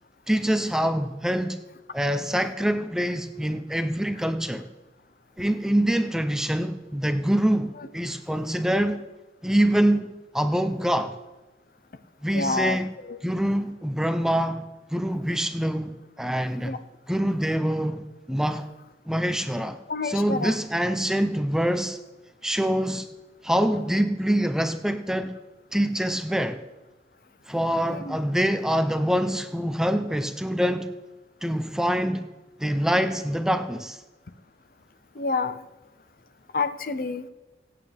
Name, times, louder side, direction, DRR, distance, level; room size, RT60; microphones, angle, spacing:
voice 1, 0.3-1.6 1.9-4.7 5.4-9.0 9.4-11.1 12.2-12.9 13.2-16.7 17.1-18.7 19.1-22.0 22.4-23.1 23.4-25.3 25.7-26.6 27.5-30.9 31.4-32.2 32.6-34.0, equal, 5° right, 0.6 m, -25 dB
voice 2, 12.3-12.8 13.1-13.2 16.6-16.8 19.9-20.5 27.9-28.2 35.1-35.6 36.5-37.3, left 4 dB, 50° left, 0.7 m, -28 dB
25.0 x 8.6 x 3.4 m
head